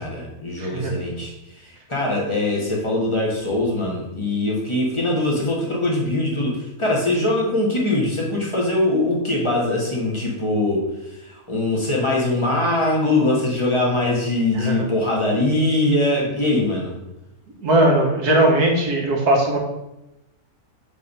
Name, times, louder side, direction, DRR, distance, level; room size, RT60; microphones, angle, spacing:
voice 1, 0.0-1.3 1.6-10.9 11.1-16.9, left 2 dB, 20° left, -3 dB, 1.7 m, -22 dB
voice 2, 0.6-0.9 14.5-14.9 17.6-19.6, right 1 dB, 85° right, 0 dB, 2.0 m, -19 dB
7.2 x 3.7 x 5.5 m, 0.91 s
omnidirectional pair, 1.6 m